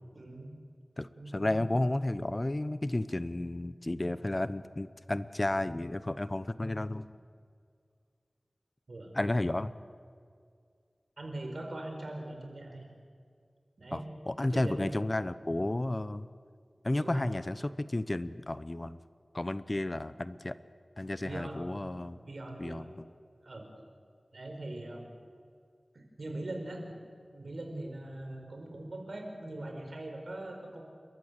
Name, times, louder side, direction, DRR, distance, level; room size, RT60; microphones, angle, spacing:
voice 1, 0.1-0.5 1.2-1.7 8.9-9.1 11.2-12.9 13.8-14.1 14.4-14.9 16.9-17.3 21.2-22.9 23.4-23.7 24.3-25.1 25.9-26.9 27.3-30.8, right 1 dB, 75° right, 2 dB, 4.7 m, -41 dB
voice 2, 1.0-7.0 9.1-9.7 13.9-16.3 16.8-19.0 19.3-20.6 21.0-22.2 22.6-22.9, left 1 dB, 35° left, 14 dB, 0.8 m, -32 dB
30.0 x 13.5 x 8.2 m, 2.2 s
wide cardioid pair, 60°, 0 cm